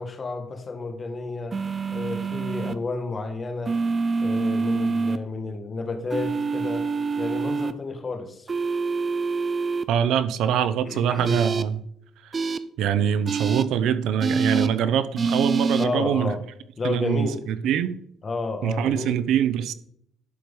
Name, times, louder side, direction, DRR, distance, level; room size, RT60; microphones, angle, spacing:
voice 1, 0.0-1.6 1.9-3.7 4.2-6.8 7.2-8.5 10.8-11.4 14.5-14.7 15.8-16.4 16.8-17.4 18.2-19.1, left 3 dB, 30° left, 6 dB, 1.6 m, -31 dB
sound 1, 1.5-2.7 3.7-5.2 6.1-7.7 8.5-9.8 11.2-11.6 12.3-12.6 13.3-13.6 14.2-14.7 15.2-15.9, right 4 dB, 30° right, 0.6 m, -26 dB
voice 2, 9.9-11.9 12.8-16.3 16.8-17.3 17.6-17.9 18.6-19.7, right 9 dB, 85° right, 13 dB, 0.7 m, -23 dB
12.0 x 4.8 x 5.4 m, 0.67 s
cardioid pair, 120°, 0 cm